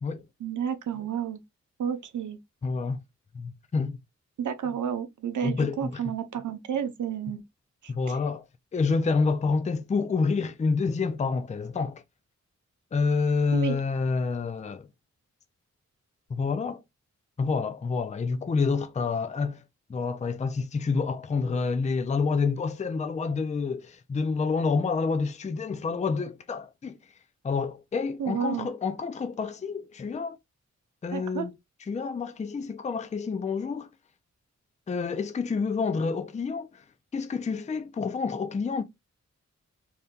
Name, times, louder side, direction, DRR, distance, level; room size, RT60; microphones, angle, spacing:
voice 1, 0.4-1.4 1.8-2.4 4.4-7.4 7.8-7.9 13.5-13.8 28.2-28.7 31.1-31.5, right 8 dB, 90° right, 0.6 m, -31 dB
voice 2, 2.6-3.0 3.3-4.0 5.4-6.0 7.9-8.4 8.7-12.0 12.9-14.9 16.3-16.8 17.4-19.6 19.9-27.0 27.4-30.4 31.0-31.5 31.9-33.9 34.9-36.8 37.1-38.8, left 4 dB, 25° left, 0.4 m, -28 dB
2.8 x 2.2 x 3.6 m
wide cardioid pair, 85°, 29 cm